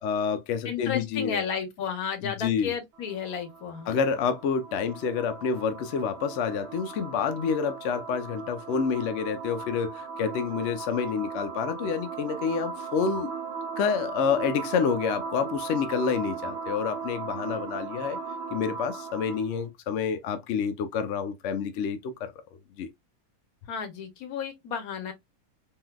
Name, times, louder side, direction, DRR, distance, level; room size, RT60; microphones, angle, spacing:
voice 1, 0.0-1.4 2.2-2.7 3.9-13.3 13.8-18.2 18.5-22.3 22.8-22.9, left 6 dB, 65° left, 0.8 m, -28 dB
voice 2, 0.6-3.9 23.7-25.1, left 7 dB, 80° left, 1.3 m, -33 dB
sound 1, 2.9-19.6, right 5 dB, 55° right, 1.0 m, -38 dB
3.6 x 2.6 x 2.2 m
omnidirectional pair, 1.5 m